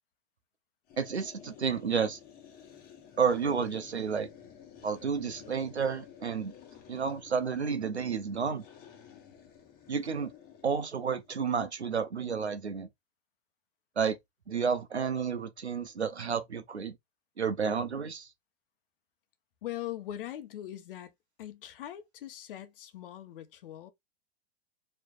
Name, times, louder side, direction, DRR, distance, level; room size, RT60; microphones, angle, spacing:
sound 1, 0.9-11.3, left 8 dB, 30° left, 1.2 m, -53 dB
voice 1, 1.0-2.2 3.2-4.3 4.8-6.5 6.9-8.6 9.9-10.3 10.6-12.9 14.0-14.2 14.5-16.9 17.4-18.3, right 6 dB, 90° right, 0.9 m, -31 dB
voice 2, 19.6-21.1 21.4-23.9, left 12 dB, 55° left, 0.9 m, -41 dB
4.6 x 3.2 x 2.4 m
figure-of-eight pair, 105°, 32 cm